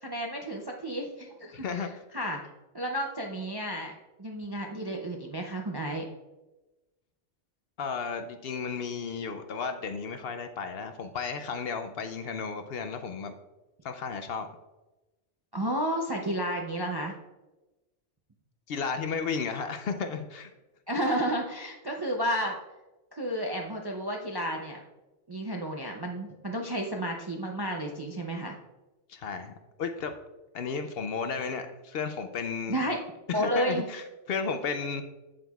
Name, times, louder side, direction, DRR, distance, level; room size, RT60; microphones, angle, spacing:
voice 1, 0.0-1.9 2.1-2.4 2.7-3.9 4.2-6.1 15.5-17.1 20.9-22.6 23.1-24.8 25.3-28.5 32.7-33.0 33.3-33.8, right 1 dB, 35° right, 1 dB, 0.4 m, -31 dB
voice 2, 1.5-1.9 7.8-13.3 13.8-14.5 18.7-20.5 29.1-30.1 30.5-32.8 33.3-35.0, left 5 dB, 65° left, 8 dB, 0.7 m, -33 dB
8.1 x 7.6 x 2.3 m, 1.1 s
omnidirectional pair, 1.2 m